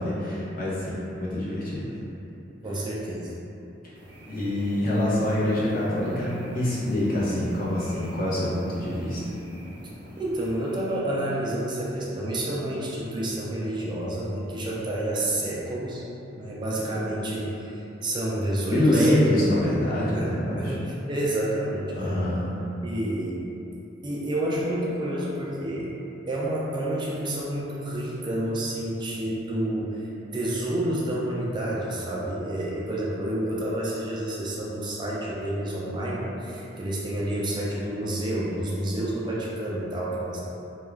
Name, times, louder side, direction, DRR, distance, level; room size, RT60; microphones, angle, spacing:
voice 1, 0.0-1.9 4.3-9.2 16.8-16.9 18.6-20.8 21.9-22.5, left 1 dB, 50° left, -8 dB, 0.7 m, -25 dB
voice 2, 2.6-3.3 10.2-16.0 16.4-19.1 20.0-22.3 22.8-23.4 24.0-25.9 26.3-40.4, right 1 dB, 25° right, -5 dB, 0.3 m, -29 dB
sound 1, 3.9-11.0, equal, 75° right, 0.5 m, -45 dB
2.3 x 2.2 x 3.1 m, 2.8 s
head